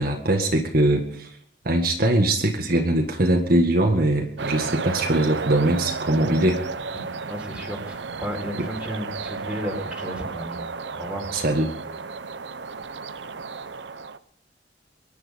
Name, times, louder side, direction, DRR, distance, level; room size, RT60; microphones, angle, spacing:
voice 1, 0.0-1.3 1.7-6.6 8.6-8.7 11.3-11.7, right 1 dB, 55° right, 2 dB, 1.8 m, -21 dB
sound 1, 4.4-14.2, right 4 dB, 80° right, 0.8 m, -33 dB
voice 2, 6.9-10.6 10.9-11.3, equal, 5° right, 0 dB, 4.2 m, -33 dB
24.0 x 10.5 x 5.3 m, 0.63 s
head